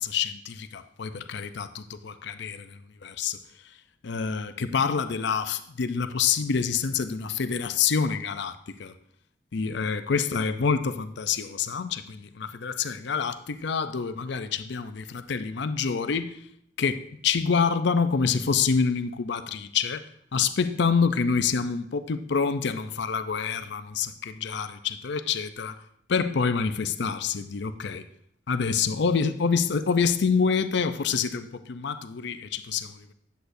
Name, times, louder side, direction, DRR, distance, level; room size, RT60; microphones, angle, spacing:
voice 1, 0.0-3.4 4.0-8.9 9.5-16.3 16.8-20.0 20.3-25.8 26.1-28.0 28.5-33.1, left 5 dB, 65° left, 0.5 m, -27 dB
10.0 x 8.0 x 2.6 m
head